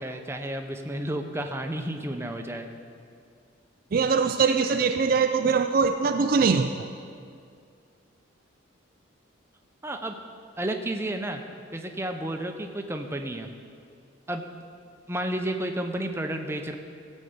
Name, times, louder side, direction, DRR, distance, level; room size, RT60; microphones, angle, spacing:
voice 1, 0.0-2.7 9.8-10.2 10.6-11.4 11.7-13.5 14.3-14.4 15.1-16.8, right 1 dB, 15° right, 4 dB, 0.7 m, -31 dB
voice 2, 3.9-6.9, right 5 dB, 45° right, 7 dB, 0.4 m, -22 dB
16.0 x 5.4 x 7.9 m, 2.3 s
head